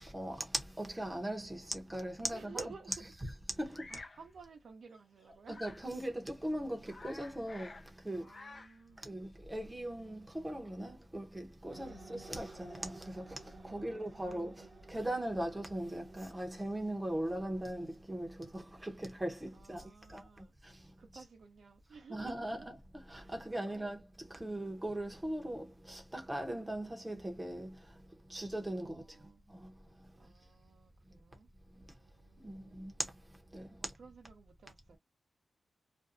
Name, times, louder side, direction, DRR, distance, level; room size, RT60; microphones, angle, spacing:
voice 1, 0.0-3.9 5.5-8.2 9.0-20.9 21.1-21.2 22.1-28.0 28.3-29.0 29.5-29.7 30.0-30.1 32.4-33.1 33.5-33.9, right 1 dB, 15° right, 0.7 m, -40 dB
voice 2, 2.3-3.1 3.9-5.6 8.1-9.3 11.8-12.4 13.6-14.7 19.5-20.5 21.0-22.5 23.2-23.8 28.7-29.4 30.2-33.0 33.8-35.0, right 4 dB, 80° right, 0.6 m, -55 dB
Bird vocalization bird call bird song, 3.7-4.2 5.5-5.9 6.4-6.5 6.7-7.9 8.2-8.8, left 3 dB, 40° left, 0.4 m, -51 dB
sound 1, 11.7-19.0, right 2 dB, 45° right, 0.7 m, -56 dB
2.5 x 2.2 x 2.5 m
wide cardioid pair, 95°, 0 cm